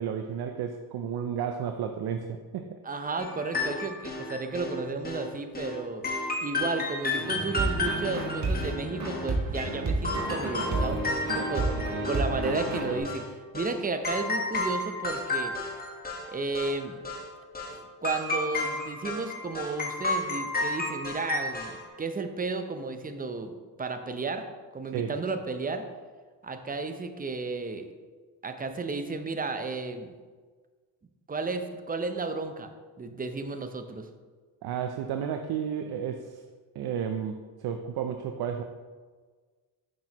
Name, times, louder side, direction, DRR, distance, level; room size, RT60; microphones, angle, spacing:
voice 1, 0.0-2.8 24.9-25.1 34.6-36.4 36.8-38.6, right 8 dB, 65° right, 6 dB, 0.5 m, -32 dB
voice 2, 2.8-6.0 6.4-15.6 16.3-17.0 17.7-23.5 23.8-24.4 24.7-25.9 26.4-27.9 28.4-30.2 31.3-32.7 33.0-34.1, right 3 dB, 20° right, 7 dB, 0.6 m, -33 dB
sound 1, 3.2-4.8 5.0-5.3 5.5-5.8 6.0-9.7 10.0-12.3 12.5-13.3 13.5-13.8 14.0-16.3 16.5-16.8 17.0-17.3 17.5-17.8 18.0-21.9, left 2 dB, 20° left, 1.4 m, -32 dB
sound 2, 7.1-13.0, right 2 dB, 40° right, 1.5 m, -31 dB
6.2 x 6.1 x 2.9 m, 1.4 s
cardioid pair, 80°, 42 cm